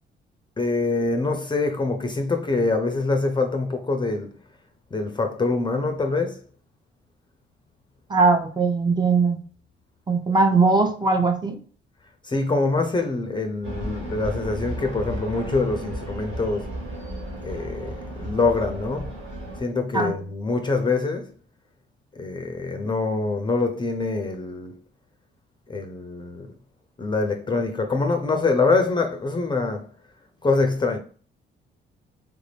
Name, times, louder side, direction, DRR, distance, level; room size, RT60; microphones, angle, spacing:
voice 1, 0.6-4.3 4.9-6.4 12.2-16.8 17.4-19.1 19.6-21.3 22.1-24.8 25.7-26.5 27.0-29.9 30.4-31.0, left 3 dB, 25° left, 0.5 m, -24 dB
voice 2, 8.1-9.4 10.1-11.6 19.9-20.1, right 4 dB, 20° right, 0.7 m, -20 dB
sound 1, 13.6-19.6, right 1 dB, 75° right, 1.9 m, -34 dB
3.5 x 2.5 x 3.3 m
cardioid pair, 90°, 20 cm